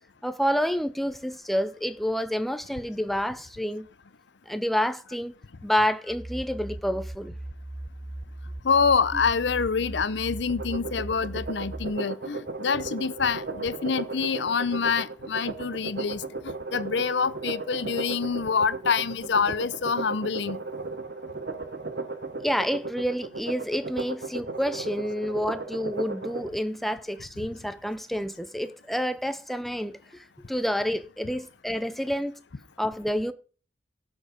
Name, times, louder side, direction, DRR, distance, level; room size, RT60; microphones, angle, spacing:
voice 1, 0.2-3.9 4.5-5.3 5.6-7.3 22.4-32.3 32.8-33.3, equal, ahead, 0.5 m, -28 dB
sound 1, 6.1-11.9, right 1 dB, 25° right, 0.8 m, -39 dB
voice 2, 8.6-20.6, left 5 dB, 70° left, 0.7 m, -26 dB
sound 2, 10.5-26.5, right 3 dB, 55° right, 1.1 m, -35 dB
17.0 x 6.4 x 5.0 m
head